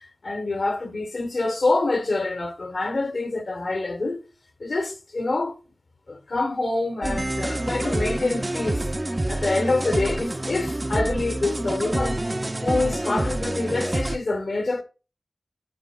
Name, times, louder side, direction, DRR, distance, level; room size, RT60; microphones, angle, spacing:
voice 1, 0.0-4.2 4.6-5.6 6.1-12.2 12.6-14.8, left 2 dB, 80° left, 1.1 m, -26 dB
sound 1, 7.0-14.2, right 1 dB, 35° right, 0.5 m, -27 dB
10.0 x 7.6 x 2.3 m
wide cardioid pair, 50°, 0 cm